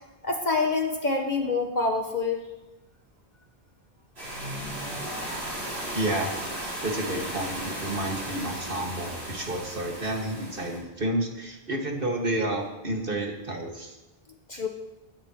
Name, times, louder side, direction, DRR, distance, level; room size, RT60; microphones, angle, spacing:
voice 1, 0.2-2.4 14.5-14.7, left 3 dB, 45° left, 2 dB, 1.6 m, -26 dB
sound 1, 4.2-10.8, right 1 dB, 85° right, 6.4 m, -35 dB
voice 2, 5.9-6.3 6.8-14.0, right 1 dB, 60° right, 0 dB, 2.5 m, -30 dB
22.5 x 13.0 x 3.3 m, 1.1 s
omnidirectional pair, 1.0 m